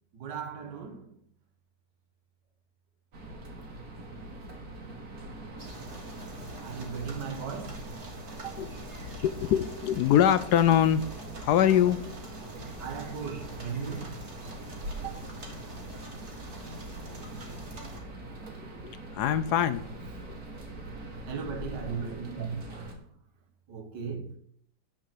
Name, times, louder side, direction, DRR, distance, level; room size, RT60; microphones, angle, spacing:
voice 1, 0.1-1.1 6.6-7.9 8.3-8.6 12.8-14.2 14.9-15.2 21.3-22.9 23.7-24.4, right 6 dB, 90° right, 2.0 m, -37 dB
sound 1, 3.1-23.0, right 1 dB, 60° right, 2.3 m, -43 dB
sound 2, 5.6-18.0, right 1 dB, 40° right, 2.1 m, -46 dB
voice 2, 9.1-11.0 11.4-12.2 18.8-19.8, left 10 dB, 75° left, 1.1 m, -23 dB
9.9 x 4.8 x 7.6 m
omnidirectional pair, 1.8 m